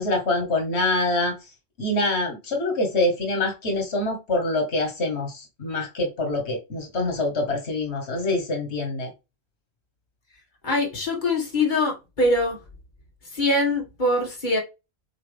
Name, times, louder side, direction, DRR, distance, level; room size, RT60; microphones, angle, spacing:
voice 1, 0.0-1.3 1.8-9.1, left 2 dB, 85° left, 1.6 m, -25 dB
voice 2, 10.6-12.6 13.3-14.6, left 2 dB, 45° left, 2.2 m, -23 dB
7.8 x 4.1 x 3.4 m
omnidirectional pair, 1.1 m